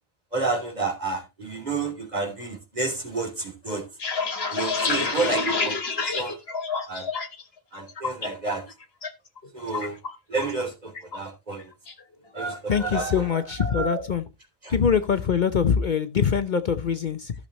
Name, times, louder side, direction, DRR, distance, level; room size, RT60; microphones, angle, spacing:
voice 1, 0.3-3.8 4.5-6.4 6.9-7.1 7.7-8.6 9.5-10.0 10.3-11.7 12.3-14.0 14.6-14.7, right 3 dB, 40° right, 3.2 m, -30 dB
sound 1, 3.8-7.4 7.8-8.3 8.7-9.1 9.4-10.6 10.9-11.2 11.5-12.0, left 4 dB, 75° left, 1.8 m, -28 dB
voice 2, 12.7-14.2 14.7-17.3, left 7 dB, 50° left, 0.8 m, -23 dB
15.0 x 6.6 x 3.0 m
omnidirectional pair, 1.1 m